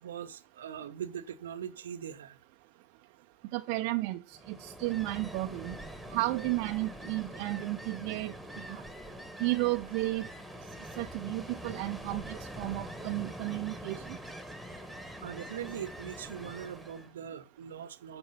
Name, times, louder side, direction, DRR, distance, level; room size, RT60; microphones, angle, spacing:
voice 1, 0.0-2.4 15.2-18.2, right 9 dB, 65° right, 0.8 m, -41 dB
voice 2, 3.5-5.7 6.1-8.3 8.7-8.8 9.4-10.3 11.0-14.2, right 20 dB, 45° right, 0.4 m, -33 dB
Ocean, 4.3-17.1, equal, ahead, 1.4 m, -44 dB
10.0 x 4.4 x 5.5 m
figure-of-eight pair, 90°, 0 cm